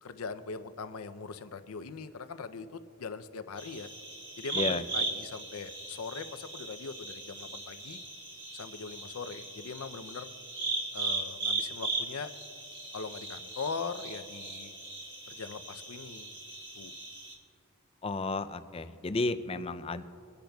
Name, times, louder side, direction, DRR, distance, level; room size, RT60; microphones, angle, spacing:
voice 1, 0.0-3.9 4.4-8.0 8.5-10.3 10.9-12.3 12.9-14.7 15.3-16.4 16.7-17.0, left 5 dB, 75° left, 11 dB, 0.6 m, -41 dB
sound 1, 3.6-17.3, right 3 dB, 20° right, 1.6 m, -38 dB
voice 2, 18.0-20.0, left 3 dB, 25° left, 11 dB, 0.4 m, -32 dB
24.5 x 10.5 x 2.3 m, 2.5 s
head